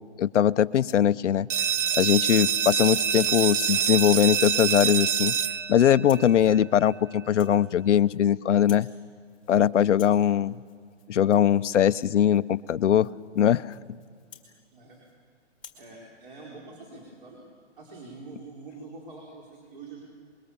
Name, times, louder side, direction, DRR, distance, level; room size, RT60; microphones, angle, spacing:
voice 1, 0.2-1.5 2.0-5.3 5.7-8.9 9.5-10.6 11.1-13.1 13.4-13.7, left 10 dB, 75° left, 16 dB, 0.7 m, -21 dB
Rattle (instrument), 0.7-1.1 1.6-2.3 2.8-3.0 3.4-3.7 4.0-4.4 4.6-5.0 5.3-5.6 6.0-6.4 6.7-7.0 7.2-8.3 8.5-8.9 9.2-9.6 9.8-15.2 15.5-15.9, left 7 dB, 5° left, 1.6 m, -53 dB
sound 1, 1.5-6.9, right 8 dB, 80° right, 1.1 m, -26 dB
voice 2, 15.8-17.4 17.8-20.0, right 3 dB, 45° right, -3 dB, 4.4 m, -45 dB
25.5 x 22.0 x 7.1 m, 2.2 s
hypercardioid pair, 175°, 36 cm